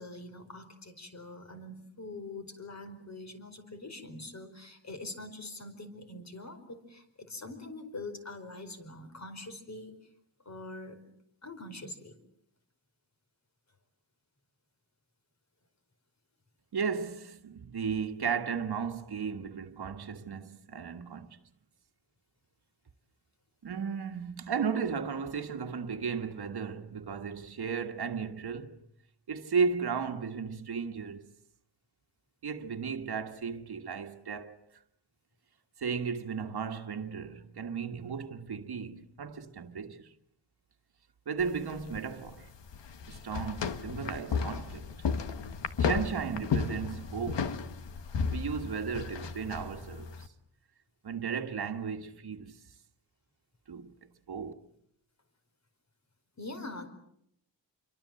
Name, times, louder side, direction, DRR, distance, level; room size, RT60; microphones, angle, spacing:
voice 1, 0.0-10.1 10.4-11.0 11.4-12.1 56.4-56.9, left 2 dB, 40° left, 4.8 m, -44 dB
voice 2, 16.7-21.4 23.6-28.8 29.3-31.3 32.4-34.6 35.8-40.1 41.2-42.5 43.1-44.9 45.8-47.7 48.3-50.3 51.0-52.6 53.7-53.9 54.3-54.5, right 6 dB, 60° right, 1.7 m, -35 dB
sound 1, 41.4-50.3, left 5 dB, 75° left, 1.8 m, -34 dB
28.0 x 23.5 x 7.7 m
wide cardioid pair, 145°, 44 cm